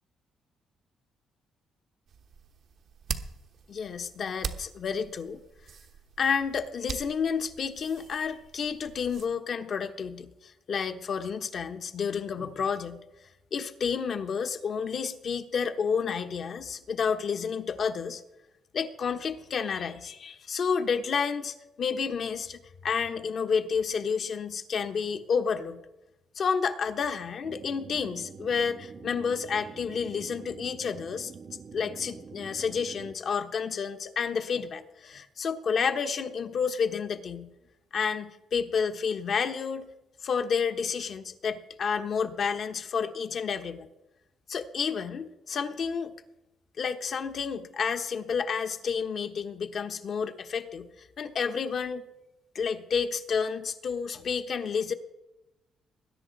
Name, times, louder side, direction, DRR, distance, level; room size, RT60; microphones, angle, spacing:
sound 1, 2.1-9.3, right 6 dB, 65° right, 1.1 m, -42 dB
voice 1, 3.7-5.4 6.2-13.0 13.5-18.2 18.7-25.8 26.3-31.3 31.7-37.5 37.9-39.9 40.2-43.9 44.5-46.1 46.8-52.0 52.5-54.9, left 6 dB, 55° left, 7 dB, 1.1 m, -30 dB
sound 2, 27.4-33.2, right 5 dB, 45° right, 0.7 m, -46 dB
20.5 x 10.0 x 4.1 m, 0.96 s
cardioid pair, 90°, 0 cm